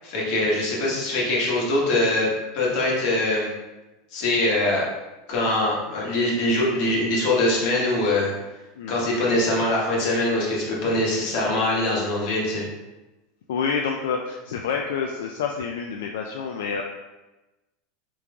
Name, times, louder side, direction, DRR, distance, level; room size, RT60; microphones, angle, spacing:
voice 1, 0.0-2.3 2.5-3.5 4.1-4.8 5.3-8.3 8.9-12.6, left 1 dB, 60° left, -4 dB, 1.3 m, -23 dB
voice 2, 8.8-9.2 13.5-16.8, left 6 dB, 85° left, 2 dB, 0.3 m, -28 dB
5.1 x 3.0 x 2.3 m, 1.1 s
supercardioid pair, 140°, 0 cm